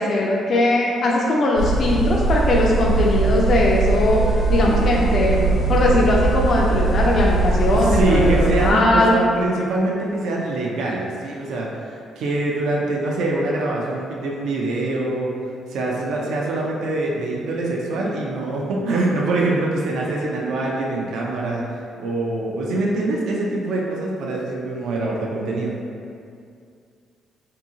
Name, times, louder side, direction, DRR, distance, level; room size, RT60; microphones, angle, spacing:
voice 1, 0.0-4.2 4.5-9.1, left 2 dB, 55° left, -3 dB, 0.3 m, -19 dB
sound 1, 1.6-8.7, right 3 dB, 85° left, 1.0 m, -20 dB
voice 2, 7.7-15.3 15.7-21.6 22.0-25.8, right 2 dB, 80° right, -3 dB, 0.4 m, -24 dB
2.6 x 2.6 x 2.7 m, 2.4 s
cardioid pair, 90°, 0 cm